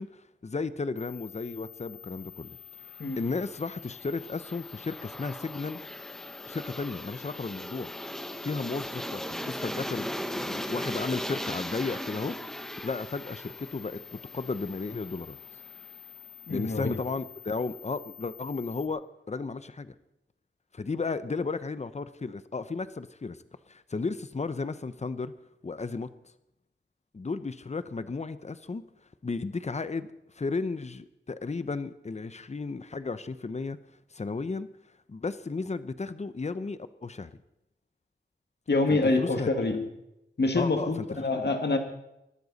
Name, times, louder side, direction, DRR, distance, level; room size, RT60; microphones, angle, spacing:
voice 1, 0.0-5.8 6.5-7.9 8.4-12.4 12.8-15.4 16.5-19.0 19.3-19.9 20.7-23.4 23.7-25.3 25.6-26.1 27.1-28.8 29.2-33.8 34.1-34.7 35.1-37.4 38.9-39.5 40.6-41.1 41.3-41.5, left 4 dB, 35° left, 13 dB, 0.7 m, -34 dB
sound 1, 1.0-18.9, left 12 dB, 85° left, 1.6 m, -49 dB
Aircraft, 3.0-15.9, equal, ahead, 0.9 m, -39 dB
voice 2, 16.5-17.0 38.7-39.8 40.4-41.8, left 3 dB, 55° left, 5 dB, 2.0 m, -26 dB
21.0 x 12.0 x 4.1 m, 0.86 s
wide cardioid pair, 80°, 20 cm